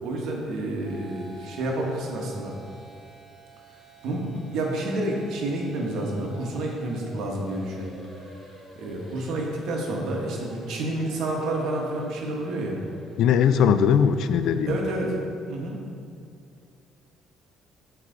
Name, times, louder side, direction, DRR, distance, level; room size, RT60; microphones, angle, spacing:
voice 1, 0.0-2.5 4.0-7.9 8.8-12.8 14.7-15.1 15.5-15.8, right 1 dB, 65° right, 0 dB, 1.2 m, -29 dB
sound 1, 0.8-14.8, equal, 15° left, 1.2 m, -48 dB
voice 2, 13.2-14.8, left 7 dB, 65° left, 11 dB, 0.3 m, -20 dB
7.3 x 4.6 x 3.8 m, 2.3 s
cardioid pair, 130°, 0 cm